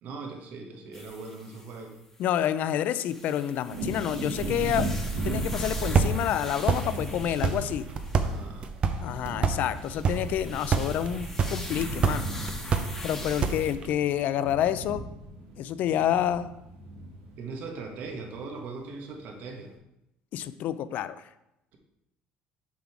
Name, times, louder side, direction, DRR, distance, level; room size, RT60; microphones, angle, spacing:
voice 1, 0.0-2.0 8.2-8.7 17.4-19.7, right 4 dB, 60° right, 2 dB, 1.4 m, -40 dB
sound 1, 0.9-2.4 2.9-8.4 9.4-13.7, left 1 dB, 10° left, 1.3 m, -43 dB
voice 2, 2.2-4.9 5.2-7.9 9.0-12.3 13.0-15.0 15.6-16.5 20.3-21.2, left 11 dB, 60° left, 13 dB, 0.4 m, -28 dB
Wind / Thunder, 3.7-11.3 11.5-18.8 19.2-19.3, right 1 dB, 75° right, 2.0 m, -38 dB
sound 2, 4.4-13.9, right 5 dB, 35° right, 0.7 m, -29 dB
7.4 x 3.7 x 5.9 m, 0.87 s
cardioid pair, 120°, 3 cm